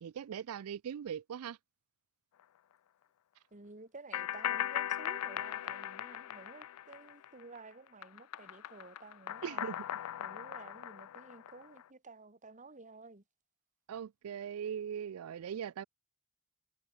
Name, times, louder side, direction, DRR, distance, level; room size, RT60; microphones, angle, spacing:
voice 1, 0.0-1.6 9.4-9.8 13.9-15.8, right 8 dB, 90° right, 0.4 m, -40 dB
voice 2, 3.5-9.8 10.2-13.2, right 3 dB, 35° right, 2.2 m, -53 dB
sound 1, 4.1-7.6 7.9-11.8, left 11 dB, 90° left, 0.4 m, -39 dB
head